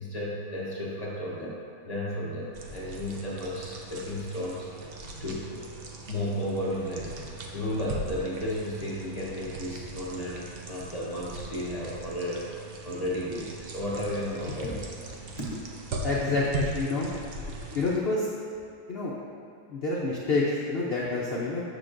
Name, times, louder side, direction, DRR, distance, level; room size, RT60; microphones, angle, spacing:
voice 1, 0.0-1.6 1.8-4.9 5.2-5.6 6.1-12.5 12.8-14.9 15.4-15.5 17.6-17.7, left 1 dB, 35° left, -6 dB, 0.6 m, -33 dB
sound 1, 2.5-18.0, right 2 dB, 80° right, 0.5 m, -40 dB
voice 2, 16.0-17.1 17.7-18.3 18.9-19.1 19.7-21.6, left 3 dB, 80° left, -5 dB, 0.5 m, -28 dB
6.5 x 6.5 x 2.5 m, 2.3 s
omnidirectional pair, 1.8 m